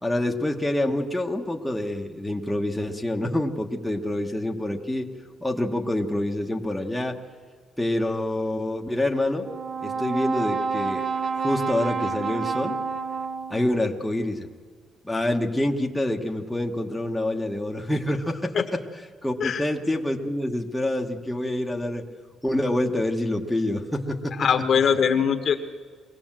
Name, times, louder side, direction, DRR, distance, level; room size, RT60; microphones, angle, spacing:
voice 1, 0.0-5.1 5.4-7.2 7.8-9.5 9.8-11.1 11.4-12.8 13.5-14.5 15.0-18.5 19.2-22.0 22.4-24.5, left 1 dB, 5° left, 1 dB, 1.3 m, -26 dB
Brass instrument, 9.4-13.8, right 5 dB, 40° right, 1.1 m, -29 dB
voice 2, 24.4-25.6, left 7 dB, 45° left, 7 dB, 1.4 m, -21 dB
23.0 x 17.5 x 7.5 m, 1.5 s
cardioid pair, 130°, 0 cm